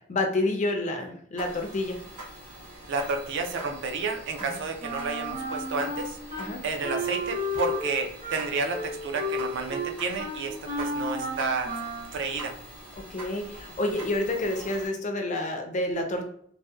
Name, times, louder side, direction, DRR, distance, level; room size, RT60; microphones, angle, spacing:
voice 1, 0.1-2.0 6.4-6.6 13.1-16.3, left 2 dB, 35° left, 3 dB, 0.4 m, -28 dB
sound 1, 1.4-14.9, right 1 dB, 85° right, 1.2 m, -44 dB
voice 2, 2.9-11.7 12.1-12.5, right 4 dB, 55° right, 4 dB, 0.4 m, -31 dB
Wind instrument woodwind instrument, 4.8-6.5 6.8-12.2, equal, 35° right, 0.8 m, -33 dB
2.7 x 2.1 x 2.2 m, 0.65 s
head